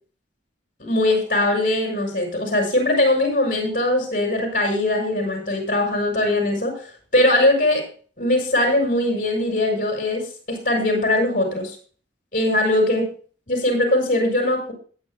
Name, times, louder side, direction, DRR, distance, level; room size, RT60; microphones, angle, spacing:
voice 1, 0.8-6.9 7.1-7.8 8.2-11.8 12.3-13.0 13.5-14.7, left 1 dB, 45° left, 1 dB, 6.1 m, -21 dB
21.0 x 9.4 x 2.3 m, 0.41 s
head